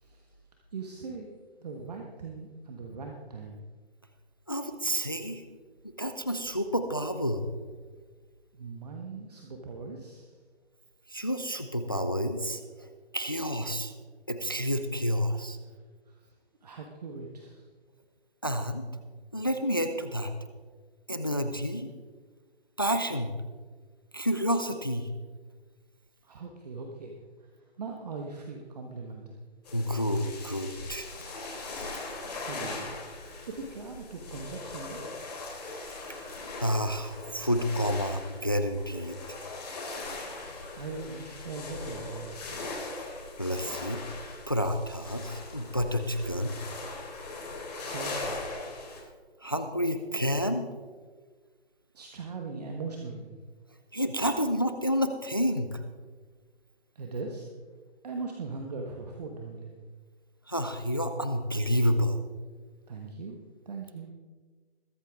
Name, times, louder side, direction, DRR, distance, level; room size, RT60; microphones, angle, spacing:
voice 1, 0.7-1.3 1.6-3.6 8.5-10.3 16.1-16.2 16.6-17.6 26.2-27.1 27.8-29.4 32.4-32.9 33.5-35.0 40.8-42.7 47.7-48.4 51.9-53.3 56.9-57.5 58.0-59.7 62.9-63.4 63.6-64.1, right 4 dB, 40° right, 2 dB, 1.4 m, -40 dB
voice 2, 4.5-5.4 6.0-7.4 11.1-13.9 14.3-15.6 18.4-18.9 19.3-20.3 21.1-21.9 22.8-23.3 24.1-25.1 29.7-31.1 31.9-32.0 36.6-39.4 43.4-44.0 44.5-46.5 49.4-50.7 53.9-55.8 60.5-62.2, equal, 20° left, 8 dB, 0.4 m, -29 dB
sound 1, 29.6-49.0, left 3 dB, 40° left, 4.1 m, -40 dB
21.5 x 8.3 x 3.6 m, 1.4 s
figure-of-eight pair, 155°, 32 cm